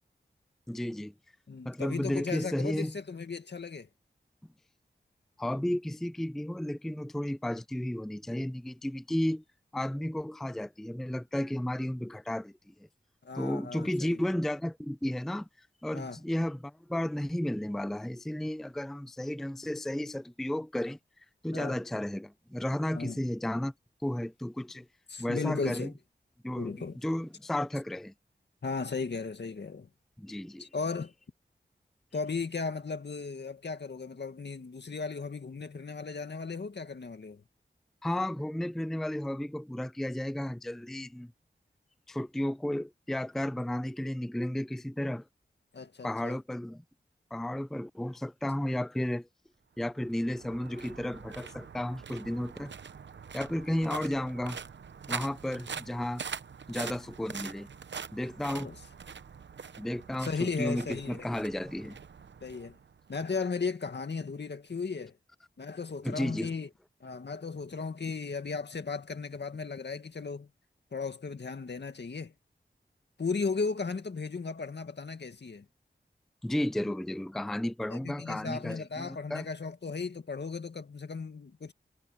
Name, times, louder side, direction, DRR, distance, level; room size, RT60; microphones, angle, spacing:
voice 1, 0.7-1.1 1.6-3.0 5.4-9.4 9.7-12.9 13.3-21.0 21.4-23.7 24.0-24.9 25.2-25.9 26.4-28.1 30.2-30.7 38.0-41.3 42.1-45.3 46.0-46.8 47.3-49.3 49.8-52.7 53.3-54.6 55.1-56.2 56.7-57.7 58.1-58.7 59.8-62.0 66.0-66.5 76.4-79.5, left 1 dB, ahead, 0.4 m, -33 dB
voice 2, 1.5-3.9 13.2-14.2 15.9-16.2 21.5-21.8 22.9-23.2 25.1-25.9 26.6-27.0 28.6-29.9 30.6-31.1 32.1-37.4 45.7-46.4 58.5-58.8 60.2-61.3 62.4-62.8 63.1-65.1 65.6-66.7 67.0-70.5 70.9-72.3 73.2-75.6 76.8-76.9 77.9-81.7, left 4 dB, 70° left, 2.0 m, -36 dB
sound 1, 49.9-63.2, right 6 dB, 85° right, 0.8 m, -44 dB
wide cardioid pair, 55°, 18 cm